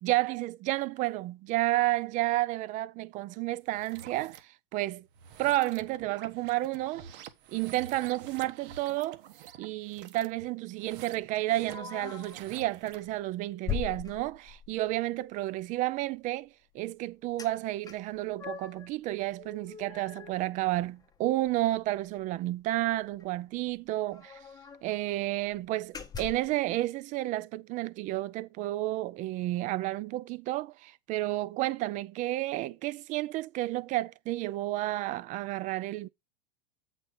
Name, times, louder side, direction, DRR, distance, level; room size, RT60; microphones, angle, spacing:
voice 1, 0.0-5.1 5.4-7.1 7.5-9.2 9.6-16.5 16.7-24.4 24.8-36.1, right 17 dB, 25° right, 0.4 m, -31 dB
sound 1, 3.7-4.4 5.1-13.1, right 9 dB, 60° right, 1.4 m, -49 dB
sound 2, 11.7-12.4 12.9-13.1 13.7-14.8 17.4-17.5 17.8-18.9 19.3-21.1 21.5-21.6 21.9-22.1 23.2-23.3 23.5-23.6 24.1-24.9 25.4-25.5 25.9-26.6, left 7 dB, 10° left, 0.9 m, -40 dB
8.0 x 4.4 x 5.2 m
supercardioid pair, 135°, 29 cm